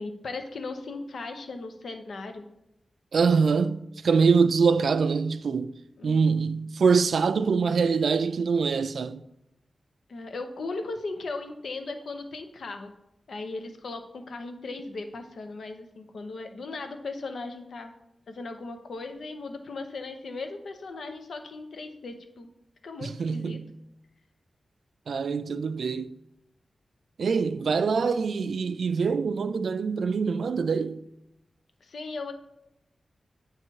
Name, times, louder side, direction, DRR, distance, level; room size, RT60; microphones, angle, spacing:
voice 1, 0.0-2.5 6.0-6.2 10.1-12.9 13.3-17.9 18.3-22.5 22.8-23.6 31.8-32.3, left 3 dB, 70° left, 0.8 m, -37 dB
voice 2, 3.1-5.7 6.0-9.2 23.0-23.7 25.1-26.1 27.2-31.0, right 5 dB, 75° right, 0.3 m, -24 dB
8.7 x 3.2 x 4.6 m
wide cardioid pair, 140°, 0 cm